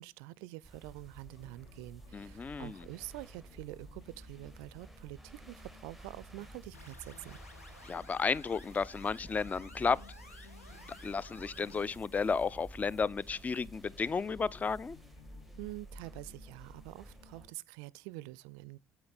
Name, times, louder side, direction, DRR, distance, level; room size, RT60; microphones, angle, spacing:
voice 1, 0.0-7.4 15.6-18.8, right 20 dB, 60° right, 0.4 m, -46 dB
sound 1, 0.6-17.5, right 1 dB, ahead, 0.7 m, -52 dB
sound 2, 1.3-17.5, left 5 dB, 60° left, 1.5 m, -61 dB
voice 2, 2.1-2.8 7.8-10.0 11.0-15.0, left 5 dB, 20° left, 0.4 m, -33 dB
sound 3, 6.7-11.8, left 2 dB, 85° left, 1.0 m, -55 dB
8.6 x 8.3 x 3.9 m
figure-of-eight pair, 55°, 8 cm